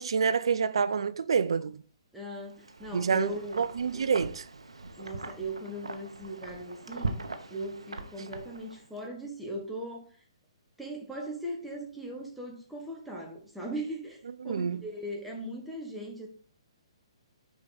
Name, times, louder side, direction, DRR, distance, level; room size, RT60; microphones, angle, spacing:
voice 1, 0.0-1.8 2.9-4.5 14.4-14.8, right 6 dB, 70° right, 0.5 m, -28 dB
voice 2, 2.1-3.7 3.9-4.0 5.0-7.2 7.5-10.2 10.8-16.3, right 1 dB, 5° right, 1.7 m, -39 dB
Wind, 2.5-9.0, right 3 dB, 85° right, 0.9 m, -40 dB
6.4 x 4.9 x 4.1 m
figure-of-eight pair, 130°, 3 cm